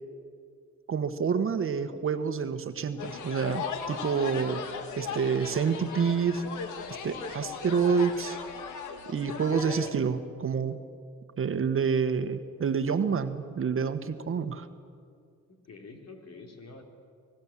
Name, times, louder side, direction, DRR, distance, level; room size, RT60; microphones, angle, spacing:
voice 1, 0.9-4.6 5.0-6.4 7.0-8.4 9.1-10.8 11.4-14.7, right 6 dB, 45° right, 9 dB, 1.4 m, -28 dB
sound 1, 3.0-9.9, left 6 dB, 85° left, 2.1 m, -38 dB
voice 2, 15.5-16.8, left 3 dB, 55° left, 3 dB, 3.7 m, -47 dB
24.0 x 20.0 x 7.4 m, 2.3 s
cardioid pair, 90°, 30 cm